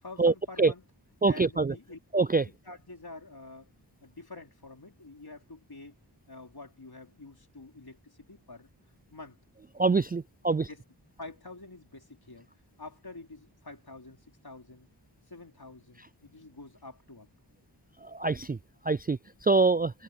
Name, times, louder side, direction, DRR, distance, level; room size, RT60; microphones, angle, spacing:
voice 1, 0.0-0.9 1.2-2.0 2.3-3.7 4.0-6.0 6.3-8.7 9.1-9.4 10.1-10.8 11.2-12.5 12.8-14.9 15.3-17.3, left 3 dB, 60° left, 4.3 m, -47 dB
voice 2, 1.2-1.7 2.1-2.4 9.8-10.6 18.1-18.6 18.9-19.2 19.5-19.9, right 3 dB, 25° right, 0.3 m, -24 dB
wide cardioid pair, 60°, 42 cm